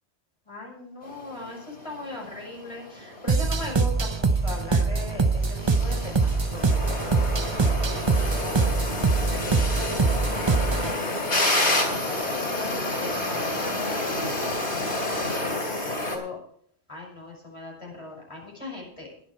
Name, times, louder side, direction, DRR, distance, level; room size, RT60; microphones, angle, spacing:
voice 1, 0.5-12.7 13.0-14.4 15.2-16.4 16.9-19.1, left 2 dB, 30° left, -1 dB, 5.7 m, -40 dB
sound 1, 1.0-16.2, left 1 dB, 90° left, 3.8 m, -30 dB
sound 2, 3.3-10.9, right 4 dB, 30° right, 0.6 m, -24 dB
21.0 x 7.4 x 4.7 m, 0.64 s
omnidirectional pair, 1.1 m